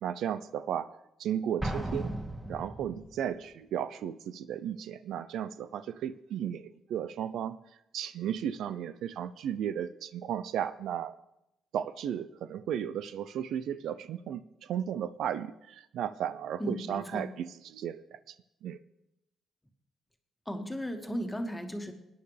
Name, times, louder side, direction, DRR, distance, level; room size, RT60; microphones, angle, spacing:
voice 1, 0.0-2.2 2.5-7.6 7.9-11.2 11.7-18.3 18.6-18.8, right 9 dB, 75° right, 13 dB, 0.5 m, -35 dB
Explosion, 1.6-3.2, right 1 dB, 15° right, 2.2 m, -36 dB
voice 2, 16.6-17.3 20.4-21.9, equal, 10° left, 4 dB, 1.8 m, -35 dB
21.5 x 9.4 x 3.3 m, 0.86 s
cardioid pair, 90°, 0 cm